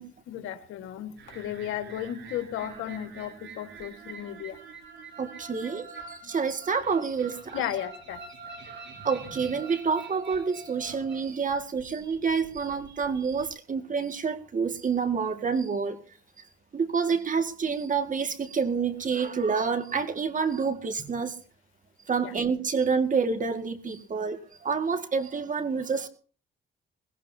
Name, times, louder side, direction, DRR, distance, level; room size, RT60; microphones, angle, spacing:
voice 1, 0.3-4.6 6.2-6.3 7.5-8.2 22.2-22.3, left 11 dB, 90° left, 8 dB, 1.7 m, -34 dB
sound 1, 1.2-13.5, right 4 dB, 70° right, 6.8 m, -46 dB
voice 2, 5.2-7.6 9.0-16.0 16.7-21.3 22.1-26.1, right 5 dB, 40° right, 7 dB, 2.0 m, -28 dB
21.5 x 18.5 x 2.8 m, 0.41 s
cardioid pair, 90°, 20 cm